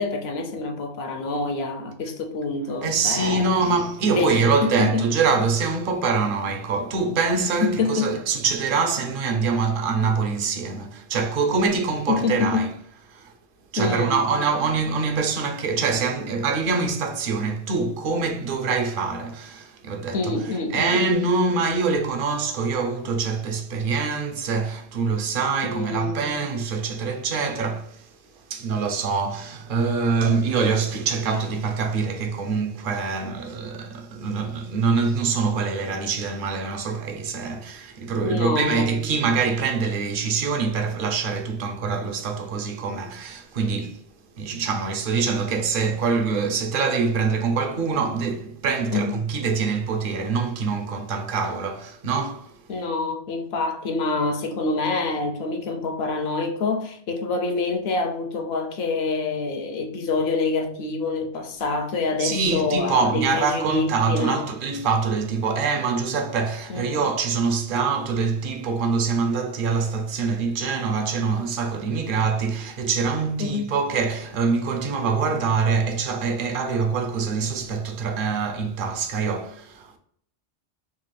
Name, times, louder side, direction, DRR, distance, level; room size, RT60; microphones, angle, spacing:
voice 1, 0.0-3.5 4.1-5.1 7.3-8.1 12.1-12.7 13.8-14.2 20.1-21.1 25.6-26.2 38.2-38.9 48.9-49.2 52.7-64.5 66.7-67.0 73.4-73.7, left 3 dB, 65° left, 0.8 m, -26 dB
voice 2, 2.8-12.7 13.1-13.3 13.7-20.4 20.7-28.1 28.5-44.0 44.4-52.6 62.2-80.0, right 5 dB, 60° right, 0.7 m, -24 dB
3.8 x 2.3 x 3.2 m
omnidirectional pair, 1.2 m